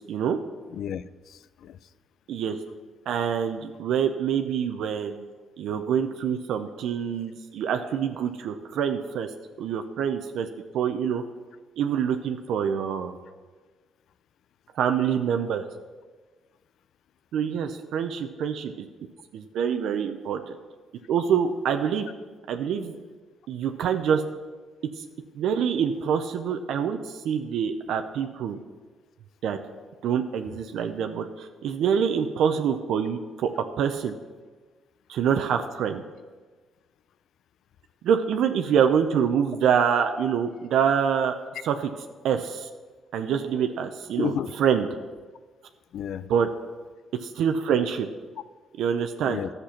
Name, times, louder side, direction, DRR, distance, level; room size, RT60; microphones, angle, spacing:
voice 1, 0.1-0.4 2.3-2.6 3.1-5.3 5.6-9.3 9.6-10.5 10.7-11.2 11.8-13.2 14.8-15.6 17.3-18.7 19.3-20.6 21.1-22.1 22.5-23.0 23.5-24.2 25.0-25.1 25.4-28.6 29.4-29.6 30.0-33.5 33.8-34.1 35.1-36.0 38.0-41.4 41.6-41.9 42.2-42.7 43.1-44.9 46.3-46.5 47.2-48.1 48.8-49.4, right 7 dB, 80° right, 6 dB, 0.6 m, -25 dB
voice 2, 0.7-1.8 44.2-44.5 45.9-46.3 49.2-49.5, left 9 dB, 70° left, 16 dB, 0.4 m, -32 dB
11.5 x 6.7 x 5.8 m, 1.4 s
cardioid pair, 90°, 0 cm